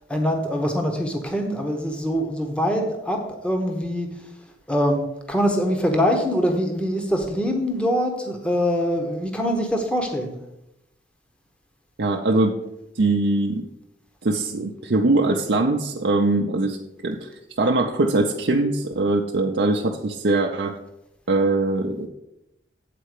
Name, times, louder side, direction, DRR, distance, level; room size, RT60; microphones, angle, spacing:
voice 1, 0.1-4.1 4.7-10.3, equal, 5° left, 3 dB, 0.9 m, -23 dB
voice 2, 12.0-12.6 12.9-13.6 14.2-16.8 17.0-17.3 17.6-20.8 21.3-22.1, right 2 dB, 70° right, 0 dB, 0.6 m, -22 dB
8.4 x 4.2 x 6.5 m, 0.89 s
head